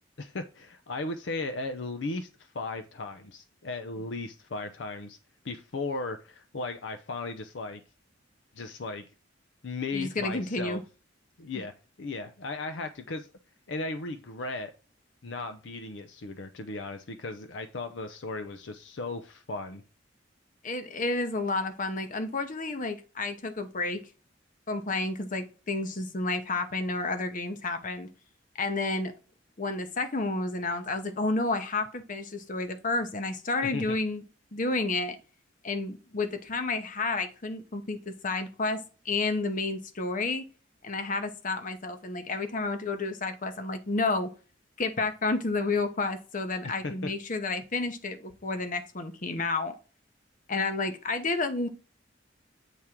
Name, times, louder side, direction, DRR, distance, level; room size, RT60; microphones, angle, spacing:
voice 1, 0.2-2.3 2.5-5.2 5.4-7.8 8.5-9.0 9.6-10.8 11.4-11.7 12.0-13.3 13.7-14.7 15.2-19.8 33.7-34.0 46.6-47.1, left 3 dB, 65° left, 0.6 m, -36 dB
voice 2, 9.9-10.8 20.6-24.0 24.7-28.1 28.6-29.1 29.6-34.2 34.5-35.2 35.6-40.5 40.8-44.3 44.8-49.7 50.5-51.7, left 3 dB, 45° left, 0.9 m, -30 dB
8.2 x 3.6 x 4.4 m
head